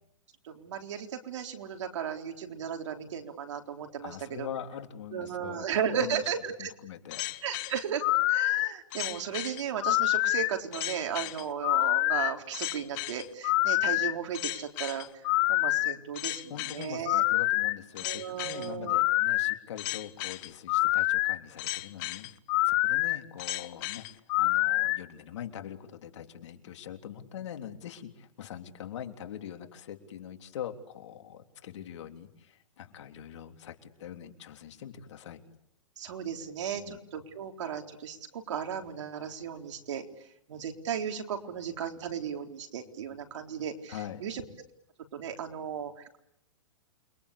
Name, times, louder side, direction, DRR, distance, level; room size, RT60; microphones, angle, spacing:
voice 1, 0.4-4.5 5.1-6.7 7.4-17.2 18.0-19.0 36.0-40.0 40.5-44.4 45.1-46.2, right 8 dB, 65° right, 4 dB, 4.1 m, -35 dB
voice 2, 4.0-5.7 5.9-6.2 6.6-7.2 16.2-22.3 22.6-24.1 24.4-35.4 36.7-37.0 43.9-44.2, left 9 dB, 65° left, 5 dB, 3.5 m, -43 dB
sound 1, 7.1-25.0, left 21 dB, 40° left, 1.2 m, -27 dB
29.0 x 23.0 x 8.5 m, 0.79 s
hypercardioid pair, 145°, 16 cm